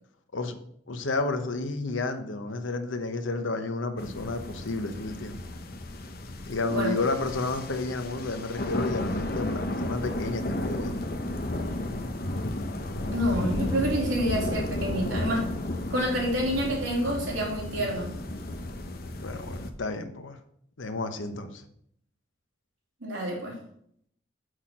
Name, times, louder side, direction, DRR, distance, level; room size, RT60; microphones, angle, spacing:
voice 1, 0.9-5.4 6.5-11.1 17.6-18.3 19.2-20.4 20.8-21.6, left 3 dB, 85° left, 8 dB, 0.9 m, -31 dB
sound 1, 4.0-19.7, left 1 dB, 50° left, 0.8 m, -33 dB
voice 2, 13.1-15.4 15.9-18.1 23.0-23.5, equal, 80° right, -3 dB, 3.2 m, -28 dB
6.4 x 5.8 x 6.3 m, 0.70 s
head